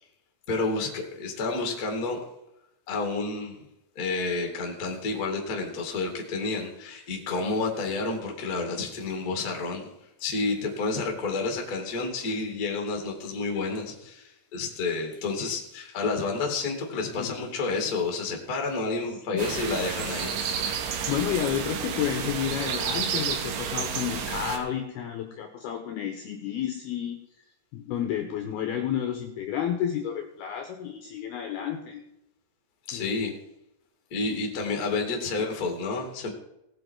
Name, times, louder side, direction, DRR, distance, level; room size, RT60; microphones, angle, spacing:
voice 1, 0.5-2.2 2.9-3.6 3.9-9.9 10.2-20.7 32.9-33.3 34.1-36.3, left 3 dB, 35° left, 2 dB, 1.4 m, -30 dB
sound 1, 19.4-24.6, right 7 dB, 85° right, 3.9 m, -31 dB
voice 2, 21.1-27.2 27.7-32.0 32.9-33.3 35.4-35.5, left 9 dB, 75° left, 4 dB, 2.4 m, -31 dB
18.5 x 7.7 x 4.6 m, 0.84 s
omnidirectional pair, 5.6 m